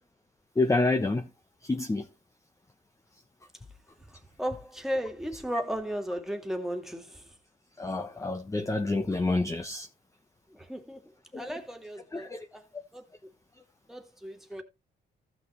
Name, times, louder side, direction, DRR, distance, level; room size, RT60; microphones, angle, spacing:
voice 1, 0.6-1.3 1.6-2.1 7.8-9.9 11.3-11.6 12.1-12.5, left 2 dB, 15° left, 1.1 m, -28 dB
voice 2, 4.4-7.1 10.6-11.0 11.4-12.3 12.5-12.6 12.9-13.0 13.9-14.6, equal, ahead, 2.5 m, -34 dB
15.0 x 6.1 x 3.3 m
cardioid pair, 90°, 20 cm